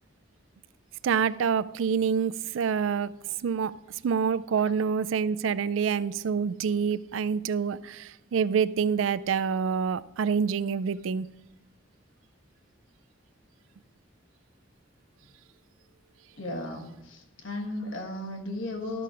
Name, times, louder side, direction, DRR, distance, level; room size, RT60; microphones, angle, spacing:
voice 1, 1.0-3.1 3.4-3.7 4.0-11.3, right 6 dB, 85° right, 0.4 m, -27 dB
voice 2, 16.4-19.0, left 1 dB, 85° left, 1.5 m, -35 dB
12.5 x 4.9 x 5.6 m
head